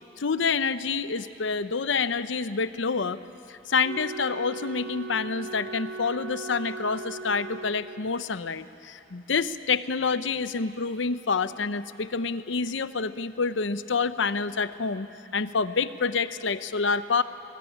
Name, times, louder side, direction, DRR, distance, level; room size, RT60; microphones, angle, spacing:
voice 1, 0.2-3.2 3.5-17.2, left 5 dB, 80° left, 13 dB, 0.7 m, -27 dB
Wind instrument woodwind instrument, 3.8-8.2, right 3 dB, 70° right, 0.7 m, -39 dB
22.0 x 19.5 x 9.9 m, 2.8 s
head